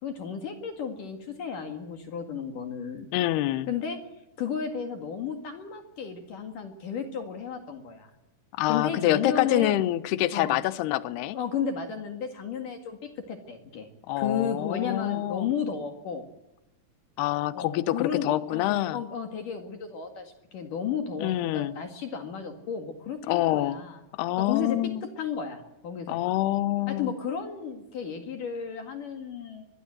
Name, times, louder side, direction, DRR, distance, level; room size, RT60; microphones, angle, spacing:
voice 1, 0.0-3.1 3.7-4.0 4.4-8.1 8.7-9.7 10.3-10.6 11.3-13.9 14.2-16.3 17.5-24.0 24.4-24.8 25.2-26.2 26.9-29.7, left 7 dB, 55° left, 3.2 m, -33 dB
voice 2, 3.1-3.7 8.6-11.4 14.1-15.5 17.2-19.0 21.2-21.7 23.3-23.8 24.2-25.0 26.1-27.1, left 15 dB, 75° left, 2.9 m, -26 dB
24.0 x 21.5 x 7.7 m
omnidirectional pair, 4.9 m